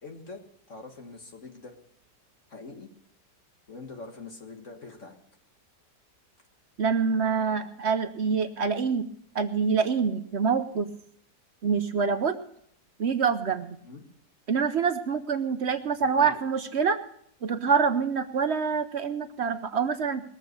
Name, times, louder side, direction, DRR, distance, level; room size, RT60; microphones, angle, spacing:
voice 1, 0.0-0.4 0.7-1.7 2.5-2.9 3.7-5.2 13.8-14.1 16.2-16.4, left 3 dB, 45° left, 3 dB, 1.9 m, -43 dB
voice 2, 6.8-9.1 9.3-10.9 11.6-12.4 13.0-13.8 14.5-17.0 17.4-20.2, right 5 dB, 55° right, 9 dB, 0.8 m, -26 dB
20.0 x 7.5 x 6.6 m, 0.66 s
omnidirectional pair, 1.8 m